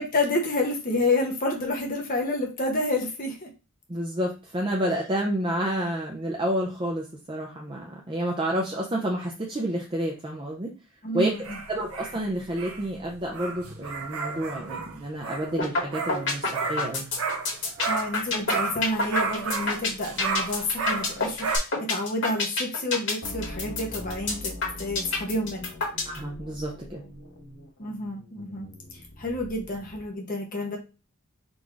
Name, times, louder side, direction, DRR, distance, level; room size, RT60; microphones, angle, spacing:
voice 1, 0.0-3.5 11.0-11.6 17.8-25.7 27.8-30.8, left 2 dB, 40° left, 0 dB, 0.9 m, -29 dB
voice 2, 3.9-10.7 11.1-17.0 26.0-27.0, right 1 dB, 25° right, -1 dB, 0.5 m, -29 dB
sound 1, 11.2-18.2 18.5-21.6, right 4 dB, 85° right, 0.8 m, -32 dB
sound 2, 15.6-15.8 16.1-26.2, left 3 dB, 60° left, 1.8 m, -27 dB
sound 3, 23.2-30.1, equal, 80° left, 1.7 m, -43 dB
3.9 x 2.6 x 4.6 m, 0.31 s
head